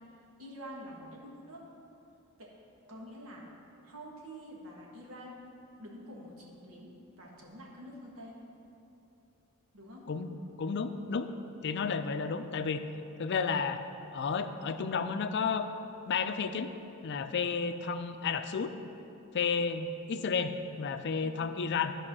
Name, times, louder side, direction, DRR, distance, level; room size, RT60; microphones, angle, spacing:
voice 1, 0.4-1.6 2.4-2.5 2.9-3.4 3.8-5.4 5.8-8.4 9.7-10.1 19.2-19.4 21.2-21.4, equal, 80° right, -2 dB, 1.7 m, -47 dB
voice 2, 10.6-11.3 11.6-12.8 13.2-13.8 14.1-15.7 16.1-16.7 17.0-18.7 19.3-22.0, left 5 dB, 55° left, 9 dB, 0.4 m, -32 dB
11.0 x 4.9 x 6.1 m, 2.8 s
head